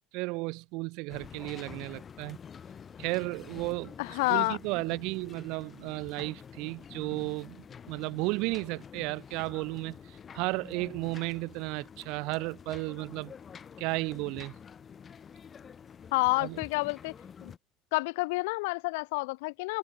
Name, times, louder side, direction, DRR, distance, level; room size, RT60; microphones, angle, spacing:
voice 1, 0.1-2.4 3.0-13.3 13.8-14.5 16.4-16.6, right 26 dB, 65° right, 3.2 m, -34 dB
sound 1, 1.1-17.6, left 7 dB, 25° left, 7.3 m, -48 dB
voice 2, 4.0-4.6 16.1-17.1 17.4-17.5 17.9-19.8, left 26 dB, 90° left, 3.1 m, -29 dB
cardioid pair, 140°, 0 cm